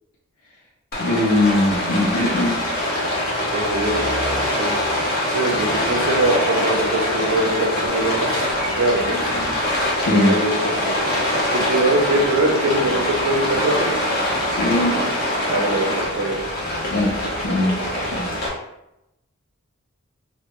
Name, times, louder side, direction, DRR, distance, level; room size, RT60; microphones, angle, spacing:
Rain, 0.9-18.5, left 1 dB, 45° left, 0.7 m, -23 dB
voice 1, 1.0-2.6 10.0-10.4 14.5-15.0 16.8-17.8 18.0-18.3, left 1 dB, 90° left, -5 dB, 0.5 m, -21 dB
voice 2, 3.5-4.7 5.3-9.2 10.1-11.0 11.5-13.9 15.5-16.4, right 2 dB, 80° right, 1 dB, 0.5 m, -23 dB
2.1 x 2.1 x 2.9 m, 0.86 s
head